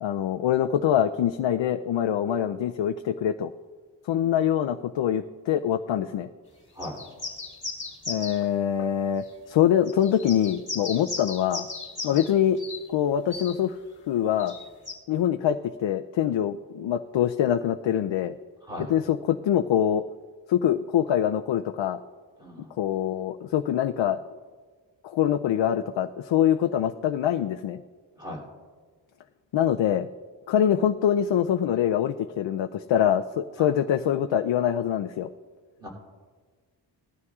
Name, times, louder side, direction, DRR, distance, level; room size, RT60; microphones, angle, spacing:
voice 1, 0.0-3.5 4.1-6.3 8.1-11.7 12.0-12.6 12.9-13.8 14.1-14.5 15.1-18.3 18.9-20.0 20.5-22.0 22.8-24.2 25.0-27.8 29.5-30.1 30.5-35.3, left 10 dB, 75° left, 7 dB, 0.5 m, -24 dB
sound 1, 6.8-8.4 9.3-9.4 9.9-12.3 12.6-12.8 13.3-13.5 14.4-14.9, left 3 dB, 15° left, 2.8 m, -36 dB
voice 2, 22.4-22.7 28.2-28.4 33.6-33.7 35.8-35.9, left 1 dB, 10° right, -4 dB, 2.8 m, -38 dB
19.0 x 12.5 x 2.4 m, 1.5 s
wide cardioid pair, 170°, 45 cm